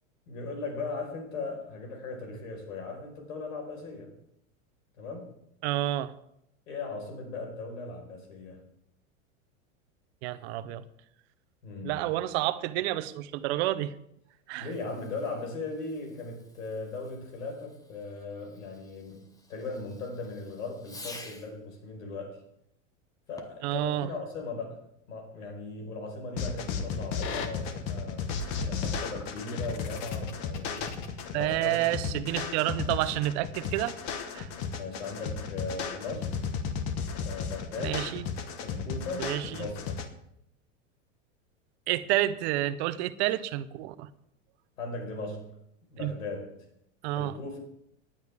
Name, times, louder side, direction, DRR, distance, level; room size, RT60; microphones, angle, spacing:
voice 1, 0.3-4.1 5.0-5.3 6.7-8.6 11.6-12.1 14.6-22.4 23.3-28.3 28.6-30.9 31.3-31.8 32.1-32.2 34.8-36.3 37.2-38.0 38.6-40.0 44.8-45.5 45.9-46.5 47.2-47.6, left 3 dB, 85° left, 3 dB, 5.0 m, -38 dB
voice 2, 5.6-6.1 10.2-10.8 11.8-13.9 14.5-14.7 23.6-24.1 31.3-33.9 34.3-34.5 37.8-38.2 39.2-39.5 41.9-44.1 46.0-46.1 47.0-47.4, right 14 dB, 55° right, 13 dB, 0.9 m, -29 dB
Fireworks, 14.5-21.6 23.3-23.8, left 2 dB, 10° left, 1.1 m, -51 dB
sound 1, 26.4-40.1, left 6 dB, 45° left, 1.6 m, -34 dB
18.0 x 10.5 x 3.6 m, 0.76 s
supercardioid pair, 135°, 39 cm